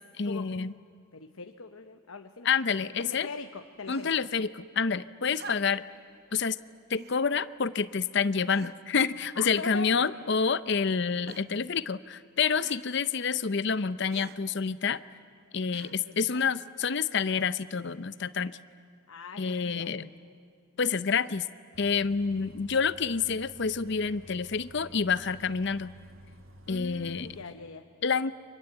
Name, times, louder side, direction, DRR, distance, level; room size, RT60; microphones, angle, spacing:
voice 1, 0.2-0.8 2.4-3.3 3.9-5.8 6.3-6.6 6.9-15.0 15.5-18.6 19.4-20.1 20.8-21.5 21.8-25.9 26.7-27.4 28.0-28.3, left 5 dB, 55° left, 15 dB, 0.6 m, -28 dB
voice 2, 1.1-2.5 3.0-4.1 9.3-10.0 16.3-16.4 19.1-19.9 26.7-27.8, left 4 dB, 85° left, 6 dB, 1.0 m, -41 dB
sound 1, 3.8-4.3 5.3-6.0 6.9-7.2 8.0-8.1 8.5-9.0 9.8-10.4 11.3-11.7 12.6-12.9 14.1-14.4 15.7-16.2 17.2-17.3, right 4 dB, 50° right, 0.9 m, -48 dB
Bus, 21.7-27.4, equal, 75° right, 1.4 m, -52 dB
29.5 x 25.0 x 8.1 m, 2.3 s
head